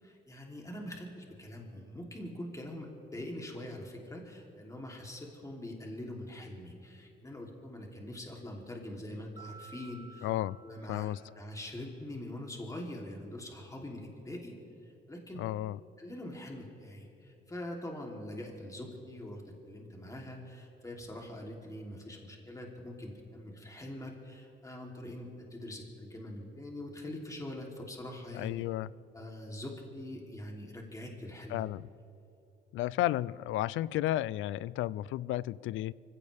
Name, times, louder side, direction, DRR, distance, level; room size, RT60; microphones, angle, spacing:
voice 1, 0.0-10.3 10.6-14.5 14.8-15.4 16.0-28.6 29.1-31.6, left 1 dB, 15° left, -1 dB, 3.2 m, -43 dB
Mallet percussion, 9.4-11.7, right 3 dB, 20° right, 1.1 m, -54 dB
voice 2, 10.2-10.6 10.9-11.2 15.3-15.8 28.3-28.9 31.5-31.9 32.7-35.9, left 14 dB, 85° left, 21 dB, 0.4 m, -33 dB
25.0 x 16.5 x 3.5 m, 2.9 s
cardioid pair, 90°, 20 cm